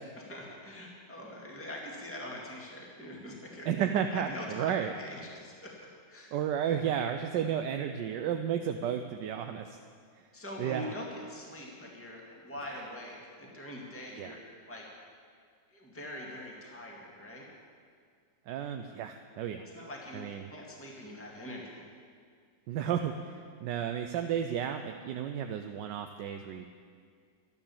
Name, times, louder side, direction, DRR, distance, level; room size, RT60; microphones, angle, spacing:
voice 1, 0.2-3.7 4.1-5.7 6.1-6.9 10.3-14.9 15.7-17.5 19.7-21.8, left 1 dB, 5° left, -2 dB, 1.9 m, -43 dB
voice 2, 3.7-4.9 6.3-9.8 10.6-10.9 12.7-12.8 14.2-14.4 18.5-19.7 20.1-20.5 22.7-23.3 23.6-26.7, right 9 dB, 80° right, 6 dB, 1.2 m, -32 dB
12.5 x 11.0 x 7.1 m, 2.1 s
omnidirectional pair, 2.0 m